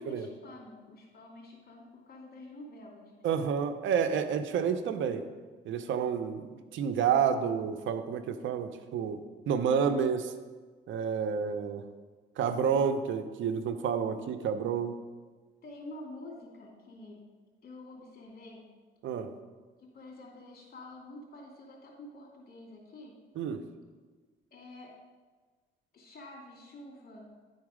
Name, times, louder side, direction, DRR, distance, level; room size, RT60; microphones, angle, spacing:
voice 1, 0.0-3.3 15.6-17.2 17.6-18.7 19.8-23.2 24.5-24.9 25.9-27.4, left 2 dB, 50° left, -2 dB, 2.6 m, -48 dB
voice 2, 3.2-5.3 5.6-9.2 9.5-10.3 10.9-11.8 12.4-15.0 19.0-19.3 23.4-23.6, right 7 dB, 75° right, 9 dB, 0.6 m, -29 dB
10.5 x 4.0 x 4.9 m, 1.4 s
cardioid pair, 90°, 20 cm